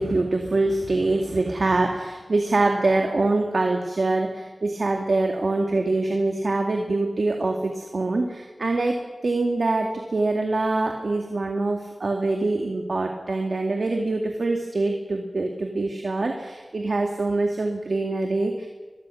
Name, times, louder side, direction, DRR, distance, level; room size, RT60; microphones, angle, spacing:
voice 1, 0.0-8.9 9.2-18.7, right 2 dB, 75° right, 2 dB, 2.2 m, -24 dB
22.5 x 22.0 x 6.4 m, 1.3 s
wide cardioid pair, 60°, 0 cm